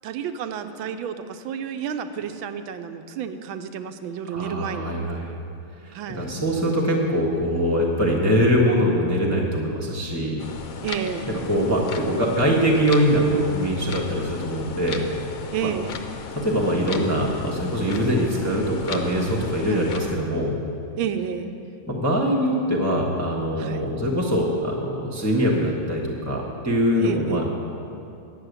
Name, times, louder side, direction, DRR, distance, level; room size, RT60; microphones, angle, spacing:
voice 1, 0.0-5.0 5.9-6.3 10.8-11.4 15.5-16.0 19.7-19.9 21.0-21.5 23.6-23.9 27.0-27.6, right 8 dB, 80° right, 9 dB, 1.4 m, -31 dB
voice 2, 4.3-5.4 5.8-10.4 11.3-15.0 15.6-15.7 16.3-20.6 21.9-27.4, equal, 10° left, -3 dB, 0.8 m, -23 dB
sound 1, 10.4-20.2, left 5 dB, 70° left, 0.8 m, -36 dB
10.0 x 7.1 x 8.1 m, 2.6 s
omnidirectional pair, 2.3 m